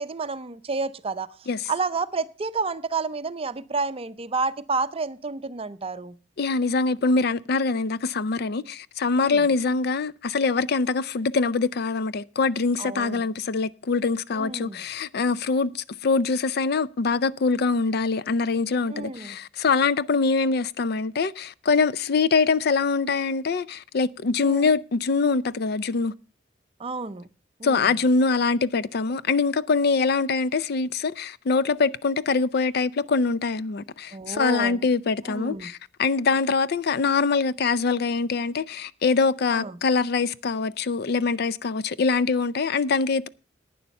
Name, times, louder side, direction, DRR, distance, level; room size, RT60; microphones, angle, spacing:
voice 1, 0.0-1.3 1.7-6.2 9.2-9.5 12.8-13.2 14.3-14.8 18.9-19.4 24.4-24.7 26.8-27.3 27.6-27.9 34.1-34.9 35.3-35.7 39.5-39.8, right 4 dB, 30° right, 0.6 m, -30 dB
voice 2, 6.4-26.1 27.6-43.3, left 4 dB, 60° left, 0.5 m, -24 dB
11.0 x 9.2 x 5.4 m
head